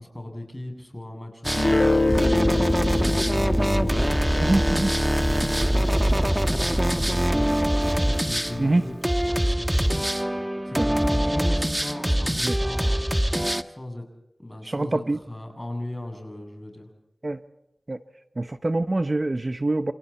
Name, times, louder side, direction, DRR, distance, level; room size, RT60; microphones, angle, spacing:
voice 1, 0.0-2.8 3.2-10.0 10.3-13.1 13.6-14.0 14.4-16.9, left 1 dB, 15° left, 3 dB, 7.8 m, -38 dB
sound 1, 1.4-13.6, equal, 10° right, 1.3 m, -23 dB
Guitar, 1.6-7.1, left 3 dB, 65° left, 1.1 m, -28 dB
voice 2, 4.4-4.9 8.6-8.8 12.4-12.6 14.6-15.2 17.2-17.4 17.9-18.0 18.4-19.9, right 2 dB, 40° right, 10 dB, 0.9 m, -24 dB
29.0 x 28.5 x 4.3 m, 0.85 s
wide cardioid pair, 70°, 0 cm